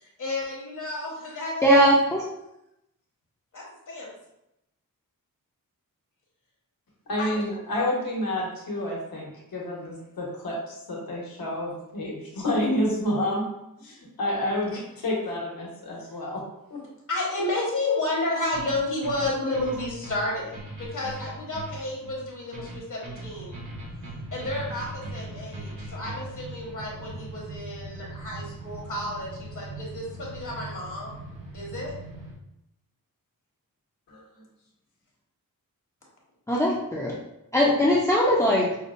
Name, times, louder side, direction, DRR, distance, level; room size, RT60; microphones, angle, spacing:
voice 1, 0.2-1.6 3.5-4.1 7.2-7.3 17.1-23.6 24.3-31.2 31.5-31.9, left 2 dB, 60° left, -3 dB, 1.1 m, -31 dB
voice 2, 1.6-2.2 36.5-37.1 37.5-38.7, equal, 10° left, -5 dB, 0.4 m, -20 dB
voice 3, 7.1-13.5 13.8-16.4 16.7-16.8 34.1-34.4, left 1 dB, 85° left, -3 dB, 1.1 m, -29 dB
sound 1, 18.5-26.4, right 1 dB, 55° right, 1.3 m, -40 dB
sound 2, 23.3-32.3, right 2 dB, 70° right, 1.0 m, -41 dB
5.2 x 2.1 x 2.5 m, 0.86 s
wide cardioid pair, 145°, 35 cm